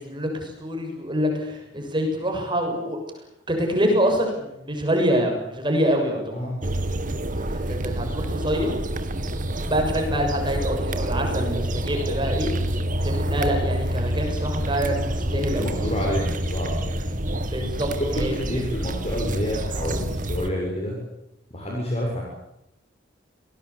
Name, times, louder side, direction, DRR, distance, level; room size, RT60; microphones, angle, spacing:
voice 1, 0.0-3.0 3.5-6.4 7.4-8.7 9.7-12.5 13.0-15.7 17.5-18.3, equal, 25° right, 3 dB, 6.7 m, -25 dB
sound 1, 6.6-20.5, right 1 dB, 45° right, 2.2 m, -27 dB
voice 2, 15.2-17.0 18.1-21.0 21.5-22.2, equal, 35° left, -1 dB, 6.9 m, -28 dB
28.0 x 19.5 x 8.5 m, 0.84 s
head